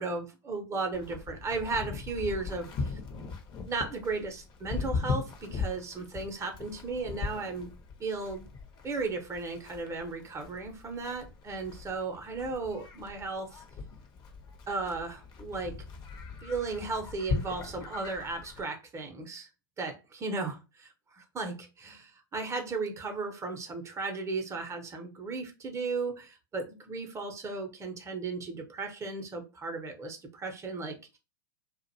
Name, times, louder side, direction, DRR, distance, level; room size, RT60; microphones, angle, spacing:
voice 1, 0.0-3.0 3.7-7.7 8.0-8.4 8.8-13.6 14.7-15.9 16.4-19.5 19.8-31.2, right 3 dB, 20° right, 0.6 m, -35 dB
Livestock farm animals working animals, 0.9-18.6, left 4 dB, 35° left, 0.6 m, -39 dB
2.4 x 2.0 x 2.7 m
hypercardioid pair, 95°, 13 cm